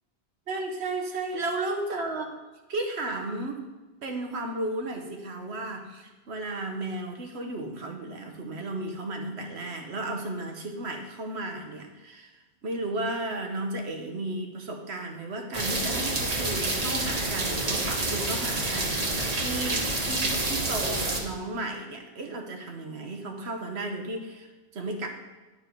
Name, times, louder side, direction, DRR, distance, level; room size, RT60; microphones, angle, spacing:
voice 1, 0.5-2.4 2.7-3.6 4.0-12.3 12.6-25.1, right 2 dB, 85° right, 4 dB, 1.3 m, -34 dB
sound 1, 15.5-21.2, right 2 dB, 40° right, 1.1 m, -28 dB
10.5 x 4.7 x 4.5 m, 1.2 s
omnidirectional pair, 1.1 m